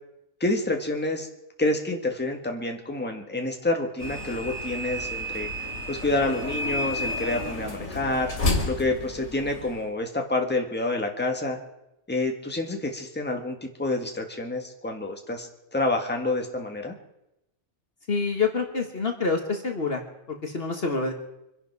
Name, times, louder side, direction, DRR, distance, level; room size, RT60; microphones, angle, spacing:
voice 1, 0.4-1.3 1.6-5.5 5.9-8.3 8.7-11.6 12.1-16.9, left 2 dB, 10° left, 3 dB, 1.7 m, -28 dB
sound 1, 4.0-9.8, left 1 dB, 85° left, 3.0 m, -31 dB
voice 2, 18.1-20.0 20.4-21.1, left 4 dB, 45° left, 4 dB, 1.7 m, -26 dB
26.0 x 11.0 x 4.7 m, 0.88 s
omnidirectional pair, 1.4 m